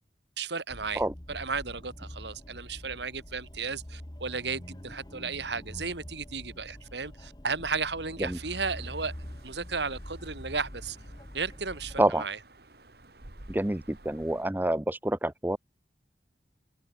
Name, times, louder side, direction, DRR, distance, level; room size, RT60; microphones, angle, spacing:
voice 1, 0.4-1.0 1.3-9.1 9.4-11.0 11.3-12.4, right 4 dB, 80° right, 2.7 m, -34 dB
sound 1, 0.7-12.0, left 1 dB, 25° left, 1.4 m, -45 dB
sound 2, 8.3-14.5, right 1 dB, 60° right, 2.5 m, -52 dB
voice 2, 13.5-15.6, right 1 dB, 10° right, 0.5 m, -27 dB
open air
head